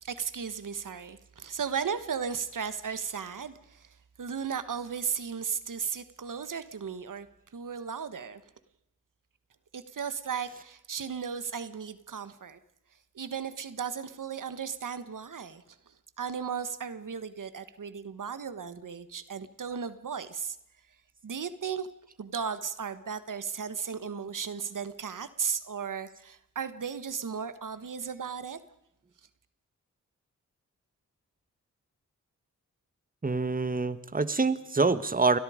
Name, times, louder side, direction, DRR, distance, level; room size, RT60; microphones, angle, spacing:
voice 1, 0.0-7.3 7.5-8.4 9.7-12.6 13.1-20.6 21.2-21.9 22.2-28.6, right 6 dB, 80° right, 13 dB, 1.4 m, -35 dB
voice 2, 33.2-35.4, right 3 dB, 25° right, 14 dB, 1.3 m, -26 dB
29.0 x 22.0 x 5.1 m, 0.80 s
wide cardioid pair, 65°, 31 cm